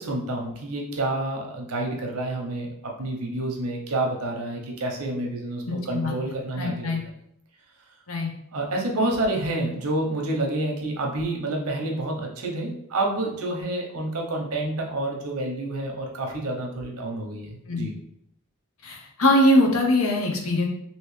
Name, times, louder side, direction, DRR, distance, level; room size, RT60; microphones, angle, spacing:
voice 1, 0.0-7.0 8.5-17.9, right 2 dB, 90° right, 0 dB, 0.8 m, -28 dB
voice 2, 5.7-6.1 6.6-7.0 8.1-8.3 17.7-17.9 18.8-20.7, left 1 dB, 65° left, 1 dB, 0.7 m, -22 dB
3.1 x 2.8 x 3.2 m, 0.74 s
head